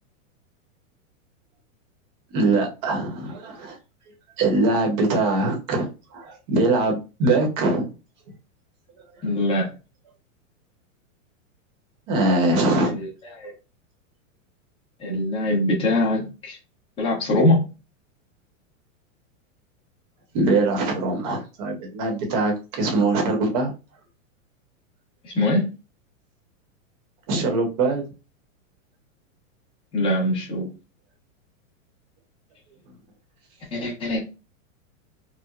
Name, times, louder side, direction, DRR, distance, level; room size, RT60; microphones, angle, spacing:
voice 1, 2.3-3.8 4.4-7.9 12.1-12.9 20.3-23.7 27.3-28.0, right 2 dB, 35° right, 3 dB, 0.9 m, -22 dB
voice 2, 9.2-9.7 12.9-13.1 13.4-13.5 15.0-16.6 17.0-17.7 25.2-25.7 29.9-30.7 33.7-34.2, left 1 dB, 15° left, -4 dB, 0.9 m, -22 dB
4.6 x 2.1 x 2.4 m, 0.30 s
supercardioid pair, 160°, 40 cm